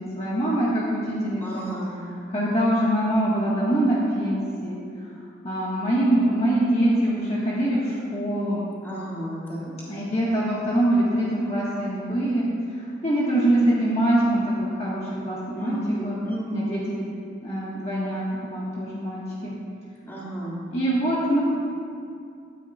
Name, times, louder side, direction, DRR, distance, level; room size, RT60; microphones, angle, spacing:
voice 1, 0.0-1.6 2.3-4.8 5.4-8.7 9.7-12.5 13.0-14.4 14.8-16.2 16.5-17.0 17.4-19.5 20.7-21.4, right 1 dB, 35° left, -8 dB, 1.6 m, -24 dB
voice 2, 1.4-2.0 8.8-9.7 15.5-16.8 20.1-20.6, right 1 dB, 15° left, -7 dB, 2.3 m, -32 dB
16.5 x 9.9 x 2.4 m, 2.4 s
head